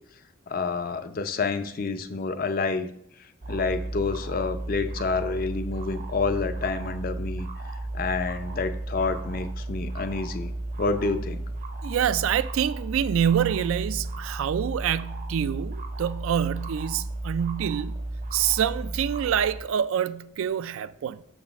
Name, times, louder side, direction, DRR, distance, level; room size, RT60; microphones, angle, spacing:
voice 1, 0.5-2.9 3.5-7.5 7.9-10.5 10.8-11.4, left 4 dB, 40° left, 0.4 m, -28 dB
sound 1, 3.4-19.6, right 2 dB, 35° right, 0.6 m, -34 dB
voice 2, 11.8-18.1 18.3-21.2, right 9 dB, 75° right, 0.3 m, -26 dB
6.4 x 4.1 x 5.8 m
head